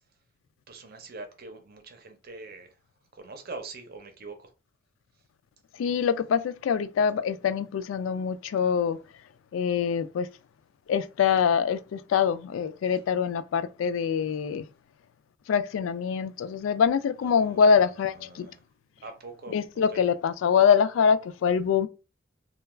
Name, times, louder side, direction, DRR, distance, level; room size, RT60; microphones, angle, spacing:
voice 1, 0.7-2.7 3.1-4.5 17.2-17.7 18.1-18.6 19.0-19.6 19.9-20.0, right 3 dB, 55° right, 0.6 m, -43 dB
voice 2, 5.8-9.0 9.5-10.3 10.9-14.7 15.5-18.5 19.5-21.9, left 7 dB, 85° left, 0.3 m, -24 dB
2.3 x 2.2 x 3.1 m
head